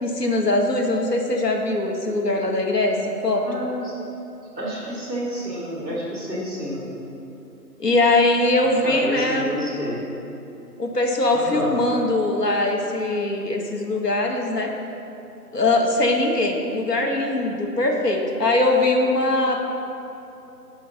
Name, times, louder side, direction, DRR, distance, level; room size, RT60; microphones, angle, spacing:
voice 1, 0.0-3.4 7.8-9.5 10.8-14.7 15.5-19.6, left 2 dB, 75° left, 2 dB, 1.2 m, -21 dB
voice 2, 3.4-3.9 4.5-6.9 8.8-10.1 11.3-11.7, equal, 5° right, -5 dB, 1.4 m, -29 dB
9.0 x 5.7 x 3.9 m, 2.9 s
figure-of-eight pair, 165°, 49 cm